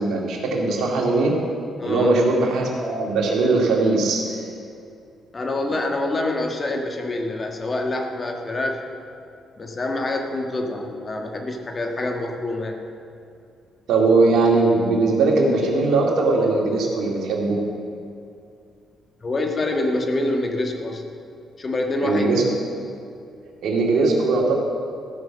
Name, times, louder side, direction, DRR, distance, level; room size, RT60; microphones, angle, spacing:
voice 1, 0.0-1.3 1.9-4.4 13.9-17.6 22.0-22.4 23.6-24.5, right 3 dB, 75° right, -2 dB, 2.4 m, -20 dB
voice 2, 1.8-2.1 5.3-8.8 9.6-12.8 19.2-21.0 21.6-22.3, left 2 dB, 35° left, 3 dB, 1.4 m, -26 dB
14.5 x 6.1 x 7.4 m, 2.5 s
cardioid pair, 90°, 0 cm